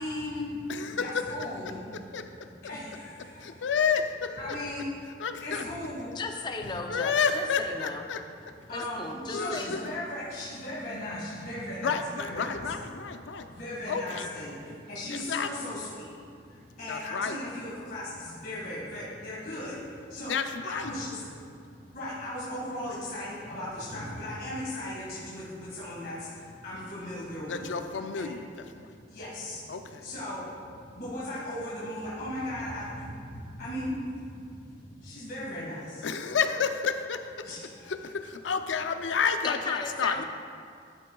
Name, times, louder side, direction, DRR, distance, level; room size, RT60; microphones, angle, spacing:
voice 1, 0.0-1.9 2.7-3.6 4.4-4.8 5.4-6.1 8.7-12.5 13.5-20.3 20.6-27.6 28.1-28.2 28.8-36.0 37.4-37.8, left 1 dB, 55° left, -8 dB, 1.8 m, -37 dB
voice 2, 0.7-1.5 1.9-2.5 3.4-4.6 5.2-5.9 6.9-8.2 8.8-8.9 9.3-9.9 11.8-13.5 13.9-14.3 15.0-15.7 16.9-17.4 20.2-20.9 27.5-28.9 29.7-30.1 36.0-37.5 37.9-40.2, left 6 dB, 75° left, 8 dB, 0.5 m, -31 dB
voice 3, 6.1-8.0 8.7-9.8 39.4-40.2, left 3 dB, 25° left, 4 dB, 0.5 m, -36 dB
11.5 x 8.4 x 2.3 m, 2.3 s
head